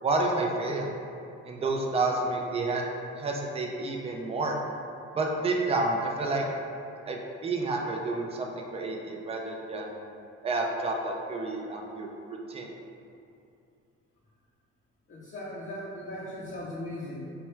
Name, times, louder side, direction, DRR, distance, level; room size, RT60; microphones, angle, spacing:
voice 1, 0.0-0.9 1.4-2.8 3.2-4.6 5.1-6.4 7.1-9.9 10.4-12.7, right 2 dB, 20° right, 1 dB, 0.4 m, -30 dB
voice 2, 15.1-17.3, left 1 dB, 40° left, -8 dB, 0.7 m, -38 dB
4.5 x 2.2 x 3.1 m, 2.6 s
cardioid pair, 90°, 30 cm